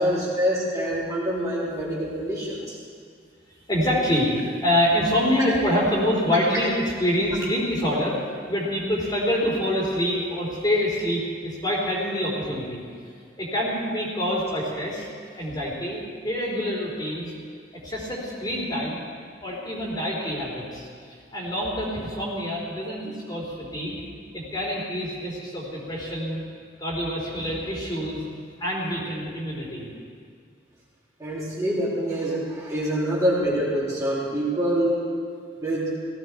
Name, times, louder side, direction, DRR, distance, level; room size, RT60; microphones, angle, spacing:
voice 1, 0.0-2.8 31.2-35.0 35.6-35.9, equal, 20° right, -8 dB, 3.5 m, -25 dB
voice 2, 3.7-12.8 13.4-15.1 15.4-17.3 17.8-19.0 19.4-20.9 21.3-24.0 24.3-26.4 26.8-28.2 28.6-29.9, equal, 25° left, -5 dB, 3.7 m, -26 dB
17.5 x 16.5 x 4.7 m, 2.2 s
head